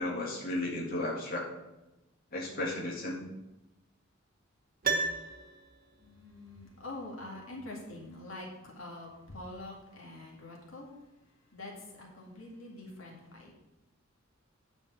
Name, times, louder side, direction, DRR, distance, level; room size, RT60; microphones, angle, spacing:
voice 1, 0.0-1.5 2.3-3.3, left 2 dB, 50° left, -4 dB, 2.0 m, -34 dB
Piano, 4.8-6.1 6.4-6.5, right 4 dB, 45° right, 1.0 m, -33 dB
voice 2, 6.0-10.9 11.5-13.5, left 2 dB, 85° left, -1 dB, 2.2 m, -45 dB
9.5 x 5.1 x 6.1 m, 0.98 s
head